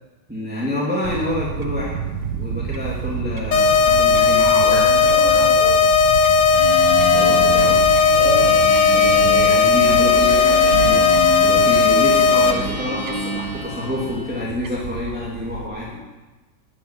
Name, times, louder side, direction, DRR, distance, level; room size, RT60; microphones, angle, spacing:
voice 1, 0.3-1.9 2.4-4.8 5.3-5.5 6.9-7.8 8.9-11.1 11.4-16.0, left 1 dB, 5° right, -5 dB, 2.8 m, -27 dB
Fowl / Bird, 1.0-15.7, right 6 dB, 80° right, 1.8 m, -30 dB
sound 1, 3.5-12.5, left 5 dB, 85° left, 1.9 m, -15 dB
voice 2, 4.6-5.9 8.1-8.6 10.2-10.7, equal, 35° left, -7 dB, 6.6 m, -29 dB
sound 2, 6.5-14.4, equal, 65° right, 4.7 m, -29 dB
12.0 x 10.0 x 9.8 m, 1.2 s
omnidirectional pair, 1.9 m